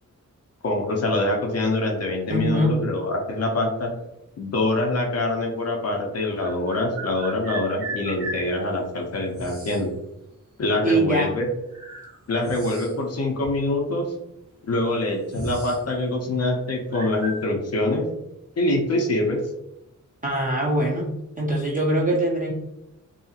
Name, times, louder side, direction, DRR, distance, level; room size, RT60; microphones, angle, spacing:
voice 1, 0.6-3.9 4.4-9.9 10.6-11.5 12.3-14.1 14.7-18.1 18.6-19.4, left 2 dB, 50° left, 0 dB, 0.5 m, -24 dB
voice 2, 2.3-2.8 10.8-11.3 20.2-21.1 21.4-22.5, right 1 dB, 25° right, -4 dB, 0.4 m, -22 dB
sound 1, 5.1-5.2 6.3-8.5 9.3-9.9 11.0-11.1 11.7-13.1 13.4-13.5 14.3-14.4 14.7-15.8 16.1-16.4 16.9-17.4, right 2 dB, 45° right, 0.9 m, -36 dB
2.7 x 2.4 x 2.7 m, 0.89 s
wide cardioid pair, 155°, 32 cm